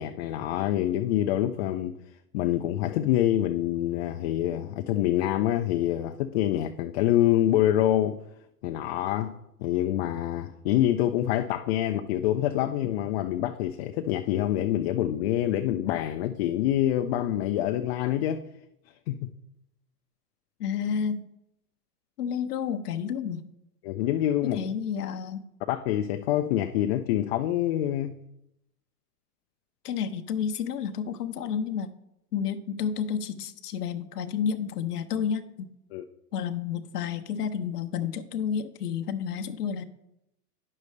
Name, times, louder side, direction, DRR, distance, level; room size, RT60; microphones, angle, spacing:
voice 1, 0.0-2.0 2.3-8.2 8.6-18.4 19.1-19.3 23.8-24.6 25.7-28.2 35.9-36.0, left 12 dB, 45° left, 7 dB, 0.5 m, -26 dB
voice 2, 20.6-21.3 22.2-23.5 24.4-25.5 29.8-31.9 32.3-35.7 36.3-39.8, left 7 dB, 85° left, 7 dB, 0.7 m, -30 dB
9.6 x 6.5 x 3.2 m, 0.83 s
hypercardioid pair, 125°, 46 cm